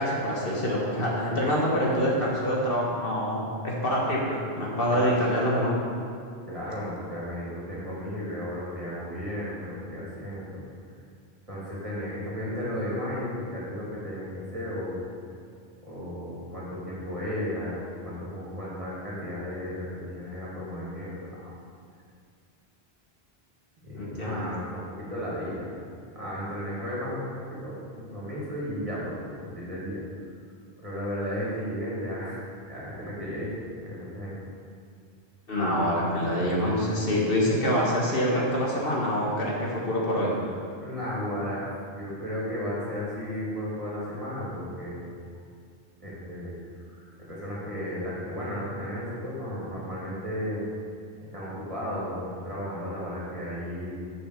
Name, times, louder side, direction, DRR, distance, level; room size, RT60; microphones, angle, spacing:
voice 1, 0.0-5.7 24.0-24.4 35.5-40.3, equal, 60° left, -4 dB, 1.8 m, -26 dB
voice 2, 6.5-10.6 11.5-15.0 15.8-21.5 23.8-25.7 26.1-30.0 30.8-32.4 32.7-33.5 33.8-34.4 40.8-45.0 46.0-46.5 46.9-50.7 51.3-53.9, equal, 30° right, -7 dB, 2.6 m, -34 dB
7.2 x 6.3 x 6.5 m, 2.2 s
omnidirectional pair, 1.1 m